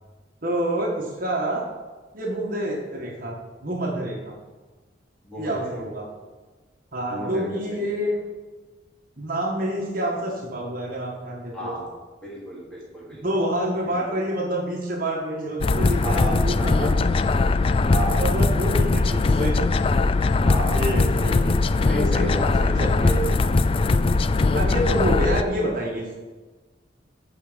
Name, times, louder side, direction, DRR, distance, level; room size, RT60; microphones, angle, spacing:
voice 1, 0.4-1.7 2.1-4.4 5.4-6.1 6.9-8.2 9.2-11.7 13.2-17.0 18.2-19.6 20.7-21.5 22.8-23.3 24.5-26.1, right 1 dB, 50° right, -2 dB, 1.7 m, -27 dB
voice 2, 5.2-5.8 7.1-7.9 11.5-11.9 12.2-13.2 13.8-14.0 16.0-16.9 17.9-18.4 20.4-21.1 21.8-23.7, equal, 5° left, -6 dB, 3.0 m, -32 dB
sound 1, 15.6-25.4, left 3 dB, 30° left, 0.3 m, -20 dB
14.5 x 5.1 x 5.2 m, 1.3 s
head